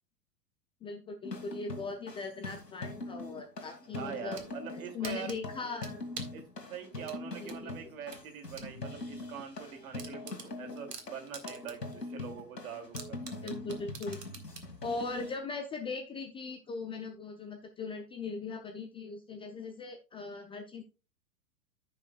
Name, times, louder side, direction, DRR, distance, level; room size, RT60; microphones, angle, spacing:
voice 1, 0.8-4.4 4.7-6.0 7.4-7.7 13.4-14.2 14.8-20.8, left 4 dB, 10° left, 5 dB, 0.5 m, -39 dB
sound 1, 1.2-15.4, left 2 dB, 90° left, 1.8 m, -42 dB
voice 2, 3.9-5.3 6.3-6.4 6.7-13.2 13.4-13.5, right 7 dB, 60° right, 4 dB, 2.6 m, -44 dB
sound 2, 4.1-4.5 5.0-6.4 7.1-8.7 9.1-9.2 9.5-9.6 10.0-11.9 12.3-12.4 13.0-14.7, right 5 dB, 80° right, 1.7 m, -45 dB
14.5 x 5.5 x 2.3 m, 0.32 s
figure-of-eight pair, 100°, 48 cm